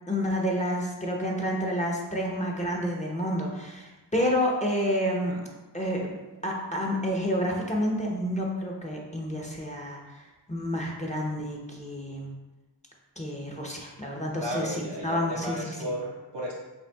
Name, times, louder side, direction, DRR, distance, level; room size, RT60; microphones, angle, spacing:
voice 1, 0.1-5.4 5.7-6.2 6.4-12.3 13.2-15.7, equal, 15° left, -2 dB, 0.8 m, -29 dB
voice 2, 14.4-16.5, equal, 65° right, -3 dB, 1.3 m, -34 dB
5.5 x 3.5 x 2.3 m, 1.1 s
wide cardioid pair, 65°, 45 cm